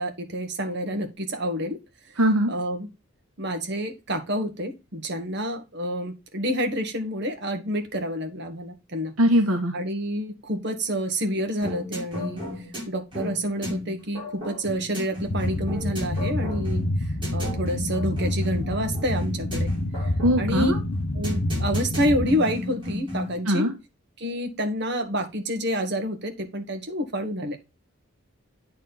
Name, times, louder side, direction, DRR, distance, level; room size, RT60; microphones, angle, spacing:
voice 1, 0.0-1.8 2.5-2.9 3.4-9.1 9.7-12.4 12.9-16.8 17.3-19.7 20.0-20.1 20.4-20.7 21.1-23.7 24.2-27.6, equal, 55° right, 6 dB, 1.4 m, -28 dB
voice 2, 2.2-2.5 9.2-9.7 20.2-20.8 23.5-23.7, equal, 85° right, 3 dB, 1.3 m, -21 dB
sound 1, 11.6-23.4, left 1 dB, 25° right, 4.5 m, -35 dB
sound 2, 15.3-22.3, left 1 dB, 65° left, 1.2 m, -28 dB
8.9 x 4.1 x 4.0 m, 0.25 s
head